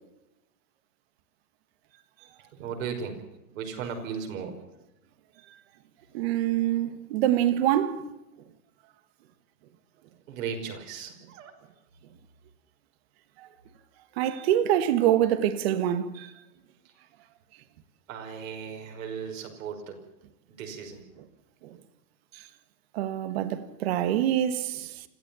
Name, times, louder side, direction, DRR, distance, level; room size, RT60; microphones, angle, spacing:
voice 1, 2.5-3.2 3.5-4.6 10.3-11.5 18.1-20.0 20.5-21.0, right 6 dB, 55° right, 5.6 m, -36 dB
voice 2, 6.1-8.1 13.4-13.5 14.2-16.3 21.6-21.8 22.9-25.0, right 11 dB, 40° right, 1.7 m, -25 dB
26.5 x 15.0 x 7.0 m
supercardioid pair, 170°, 46 cm